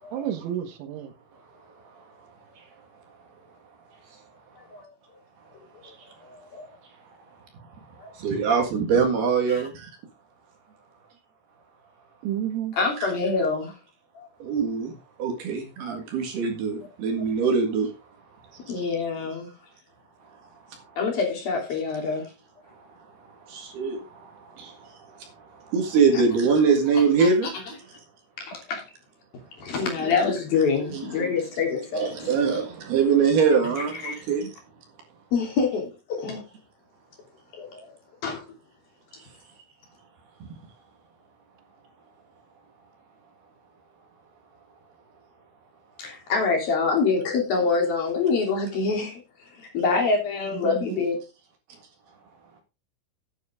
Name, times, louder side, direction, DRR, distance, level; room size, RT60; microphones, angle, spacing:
voice 1, 0.1-1.1 12.2-12.8 50.6-51.0, right 10 dB, 85° right, 4.1 m, -30 dB
voice 2, 5.8-6.7 8.0-8.1 9.5-9.6 12.7-13.8 14.2-14.3 18.7-19.5 21.0-22.2 26.1-26.2 27.2-27.3 28.4-28.8 29.6-32.4 34.0-34.1 35.3-36.4 37.6-37.9 38.2-38.5 46.0-49.1 49.5-51.2, left 4 dB, 50° left, 4.5 m, -26 dB
voice 3, 8.1-9.9 14.4-14.9 15.2-17.9 18.5-18.8 23.5-27.5 30.1-30.2 30.9-31.0 31.9-34.5, right 5 dB, 60° right, 3.3 m, -23 dB
12.5 x 9.6 x 3.7 m
omnidirectional pair, 5.9 m